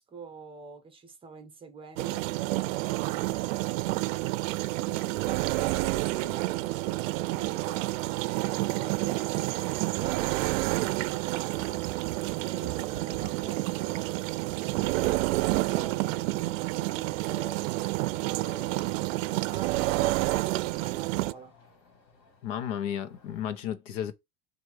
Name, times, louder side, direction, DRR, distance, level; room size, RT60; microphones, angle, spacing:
voice 1, 0.0-2.3 3.0-8.1 8.4-19.0 19.3-21.5, right 4 dB, 15° right, 0.7 m, -46 dB
sound 1, 2.0-21.3, right 19 dB, 85° right, 0.5 m, -29 dB
sound 2, 4.4-23.4, left 4 dB, 45° left, 2.4 m, -59 dB
voice 2, 22.4-24.1, left 10 dB, 70° left, 1.1 m, -33 dB
7.8 x 2.7 x 4.8 m
supercardioid pair, 170°, 38 cm